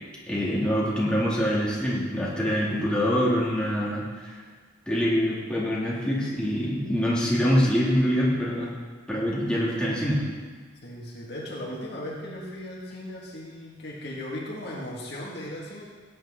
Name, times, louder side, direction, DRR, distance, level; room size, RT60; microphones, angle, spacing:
voice 1, 0.3-4.4 4.9-8.7 9.1-10.2, equal, 5° left, -7 dB, 2.5 m, -25 dB
voice 2, 10.8-15.8, left 1 dB, 55° left, -3 dB, 2.1 m, -37 dB
16.5 x 9.3 x 3.9 m, 1.5 s
head